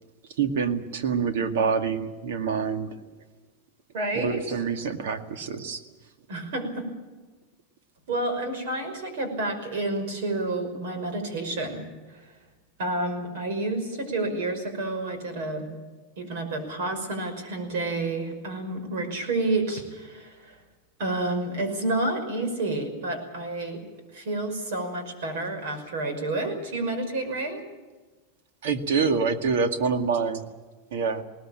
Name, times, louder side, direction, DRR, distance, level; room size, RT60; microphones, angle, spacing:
voice 1, 0.4-2.9 4.2-5.8 28.6-30.4 30.9-31.2, right 5 dB, 80° right, 8 dB, 2.1 m, -26 dB
voice 2, 3.9-4.6 6.3-6.9 8.1-12.4 12.8-15.7 16.2-20.6 21.0-27.7, right 2 dB, 60° right, 7 dB, 5.6 m, -30 dB
20.0 x 19.0 x 8.9 m, 1.3 s
supercardioid pair, 175°, 0 cm